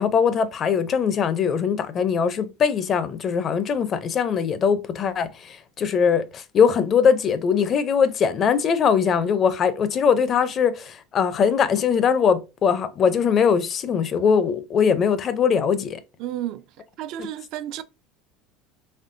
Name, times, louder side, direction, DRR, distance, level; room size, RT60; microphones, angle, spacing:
voice 1, 0.0-16.0, left 6 dB, 35° left, 0.5 m, -21 dB
voice 2, 16.2-17.8, right 12 dB, 55° right, 0.3 m, -32 dB
4.2 x 3.3 x 2.6 m
supercardioid pair, 135°, 0 cm